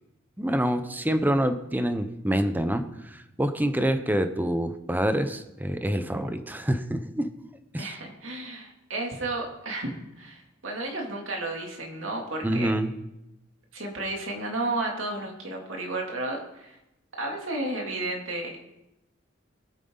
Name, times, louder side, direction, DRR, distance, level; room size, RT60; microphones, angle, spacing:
voice 1, 0.4-7.3 7.7-7.9 12.4-12.9, right 1 dB, 10° right, 9 dB, 0.8 m, -26 dB
voice 2, 7.8-12.7 13.7-16.7 17.2-18.6, right 2 dB, 70° right, 0 dB, 3.0 m, -32 dB
20.5 x 9.0 x 4.0 m, 0.89 s
head